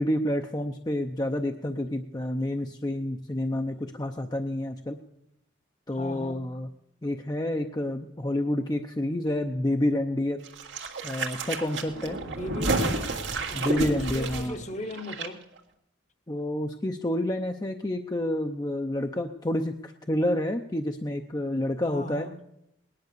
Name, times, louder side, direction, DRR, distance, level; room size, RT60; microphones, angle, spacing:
voice 1, 0.0-5.0 5.9-6.7 7.0-10.4 11.0-12.2 13.5-14.6 16.3-22.3, left 1 dB, 20° left, 0.6 m, -29 dB
voice 2, 5.9-6.6 12.2-13.2 13.5-15.5 21.9-22.3, left 1 dB, 40° left, 1.0 m, -38 dB
sound 1, 10.4-15.3 15.6-15.7, right 3 dB, 85° right, 1.8 m, -31 dB
19.0 x 10.5 x 6.7 m
head